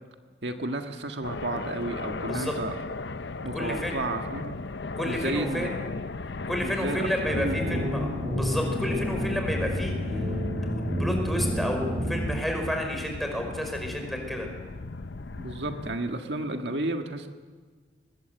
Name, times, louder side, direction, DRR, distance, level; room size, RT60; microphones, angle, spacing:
voice 1, 0.4-2.8 3.4-4.6 5.0-5.8 6.6-8.2 15.3-17.3, right 2 dB, 75° right, 5 dB, 1.6 m, -32 dB
sound 1, 1.2-16.0, left 3 dB, 75° left, 0.7 m, -36 dB
voice 2, 3.5-3.9 5.0-5.7 6.4-10.3 10.8-14.5, equal, ahead, 2 dB, 5.0 m, -31 dB
sound 2, 7.3-12.4, equal, 30° right, 7.8 m, -30 dB
23.5 x 20.5 x 8.1 m, 1.5 s
head